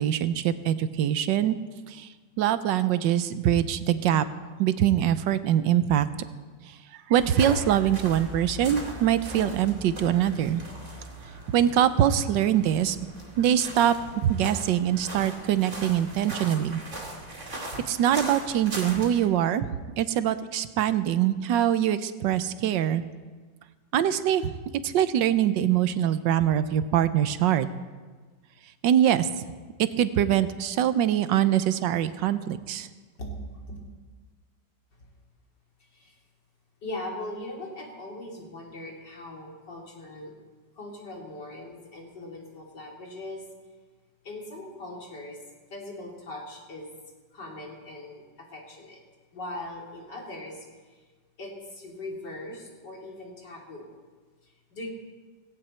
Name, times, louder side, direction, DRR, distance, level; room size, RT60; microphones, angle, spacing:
voice 1, 0.0-1.6 1.9-2.1 2.4-4.2 4.6-6.1 7.1-10.6 11.5-13.0 13.4-13.9 14.2-16.8 17.6-19.7 20.0-23.0 23.9-24.5 24.8-27.7 28.8-29.3 29.8-32.9, right 10 dB, 80° right, 13 dB, 1.4 m, -23 dB
sound 1, 7.1-19.3, right 1 dB, 40° right, 3.4 m, -39 dB
voice 2, 36.8-40.3 40.8-43.4 44.2-45.4 45.7-46.9 47.3-49.0 49.3-51.0 51.4-53.9 54.4-54.9, left 1 dB, 70° left, -1 dB, 3.7 m, -40 dB
17.5 x 17.0 x 4.4 m, 1.4 s
omnidirectional pair, 1.9 m